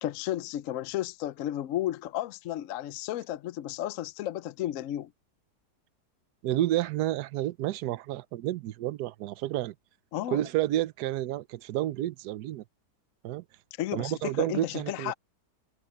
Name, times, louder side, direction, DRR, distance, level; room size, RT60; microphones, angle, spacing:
voice 1, 0.0-5.1 10.1-10.4 13.8-15.1, left 13 dB, 65° left, 0.8 m, -33 dB
voice 2, 6.4-9.7 10.3-12.6 13.2-13.4 13.9-15.1, right 14 dB, 75° right, 1.2 m, -30 dB
omnidirectional pair, 1.8 m